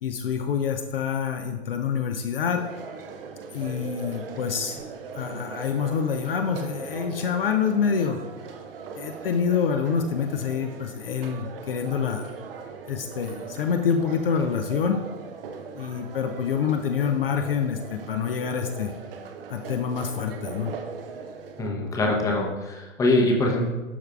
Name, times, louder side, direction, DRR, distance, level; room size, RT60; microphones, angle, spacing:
voice 1, 0.0-2.6 3.5-4.8 5.2-8.2 8.9-12.3 12.9-15.0 15.7-18.9 19.5-20.7, left 7 dB, 45° left, 5 dB, 0.6 m, -26 dB
sound 1, 2.6-21.7, right 5 dB, 45° right, 0.7 m, -40 dB
voice 2, 21.6-23.7, left 1 dB, 10° left, 0 dB, 0.8 m, -23 dB
12.0 x 4.5 x 2.3 m, 1.2 s
figure-of-eight pair, 110°, 39 cm